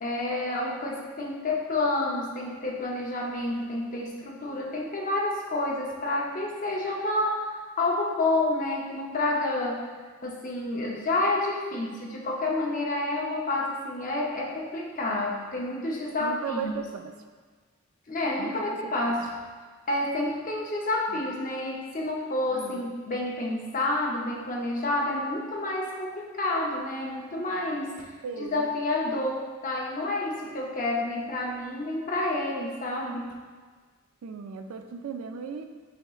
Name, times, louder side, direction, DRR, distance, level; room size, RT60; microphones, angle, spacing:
voice 1, 0.0-10.0 10.2-16.8 18.1-19.3 19.9-28.1 28.4-33.3, left 2 dB, 40° left, -2 dB, 0.6 m, -29 dB
voice 2, 16.2-17.2 18.4-18.9 22.5-22.7 28.2-28.7 34.2-35.6, right 6 dB, 80° right, 6 dB, 0.3 m, -36 dB
6.3 x 2.9 x 2.4 m, 1.5 s
head